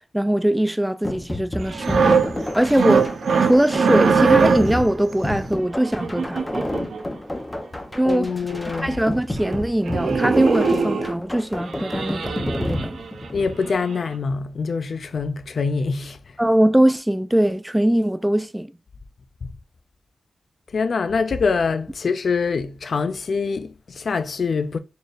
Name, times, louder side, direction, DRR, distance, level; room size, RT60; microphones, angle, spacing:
voice 1, 0.1-3.1 3.4-6.8 7.9-8.3 8.8-13.0 16.4-18.8, right 1 dB, 5° right, 0.3 m, -21 dB
sound 1, 1.0-13.6, left 1 dB, 20° left, 0.8 m, -30 dB
sound 2, 1.6-4.9 5.8-7.0 8.2-8.3 8.5-8.6 8.9-9.1 9.4-9.6 9.9-11.2 11.6-13.3 13.7-13.9, right 5 dB, 90° right, 0.5 m, -21 dB
voice 2, 8.1-9.0 13.3-16.2 19.4-19.5 20.7-24.8, left 5 dB, 70° left, 0.4 m, -24 dB
4.2 x 3.3 x 2.5 m
wide cardioid pair, 80°, 0 cm